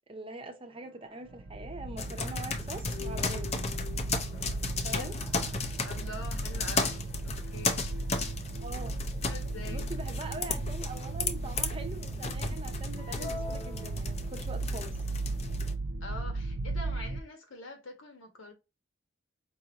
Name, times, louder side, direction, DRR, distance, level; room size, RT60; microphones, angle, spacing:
voice 1, 0.1-3.5 4.8-5.1 8.6-9.0 9.7-15.0, right 2 dB, 25° right, 0.6 m, -43 dB
sound 1, 0.7-10.7, left 10 dB, 5° left, 1.1 m, -53 dB
sound 2, 1.3-17.2, right 2 dB, 75° right, 0.5 m, -36 dB
sound 3, 2.0-15.7, left 4 dB, 30° left, 0.5 m, -35 dB
voice 2, 5.8-7.9 9.2-9.9 16.0-18.5, left 2 dB, 85° left, 1.2 m, -44 dB
4.7 x 2.6 x 2.8 m
head